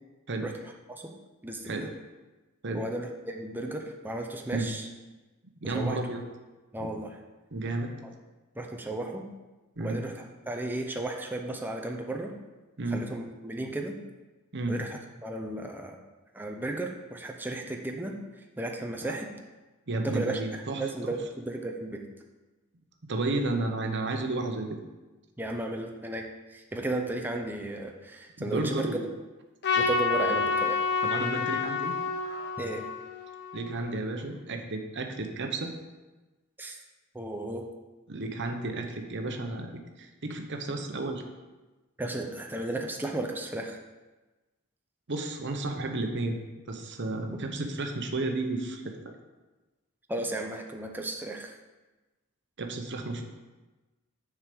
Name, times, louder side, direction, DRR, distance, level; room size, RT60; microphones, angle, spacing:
voice 1, 1.4-1.9 2.7-4.8 5.6-6.0 6.7-7.2 8.6-9.3 9.8-10.1 10.5-12.3 12.9-14.0 14.7-16.0 16.3-18.2 18.6-19.3 20.0-20.4 20.7-22.1 25.4-26.2 26.5-28.9 29.7-30.8 32.6-32.8 36.6-36.7 37.1-37.6 42.0-43.8 50.1-51.5, right 2 dB, 10° right, 2 dB, 0.7 m, -34 dB
voice 2, 5.6-6.2 6.8-6.9 7.5-7.9 9.8-10.0 12.8-13.0 14.5-14.8 19.0-19.2 19.9-20.8 23.0-24.8 28.4-29.1 31.0-32.0 33.5-35.7 38.1-41.3 45.1-46.4 46.7-49.1 52.6-53.2, right 2 dB, 55° right, 4 dB, 1.0 m, -32 dB
Trumpet, 29.6-34.0, left 5 dB, 50° left, 0.9 m, -29 dB
6.7 x 4.8 x 6.8 m, 1.2 s
head